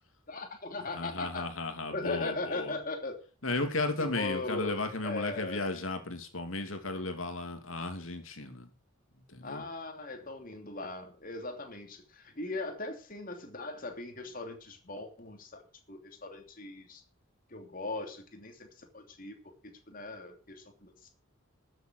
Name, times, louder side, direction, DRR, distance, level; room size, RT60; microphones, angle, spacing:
voice 1, 0.3-1.5 1.9-3.2 4.0-5.6 9.4-15.6 15.9-17.0 17.5-21.1, left 3 dB, 40° left, 5 dB, 3.0 m, -39 dB
voice 2, 0.9-2.8 3.4-8.7 9.3-9.6, left 2 dB, 75° left, 7 dB, 2.7 m, -34 dB
13.5 x 7.9 x 6.3 m, 0.37 s
head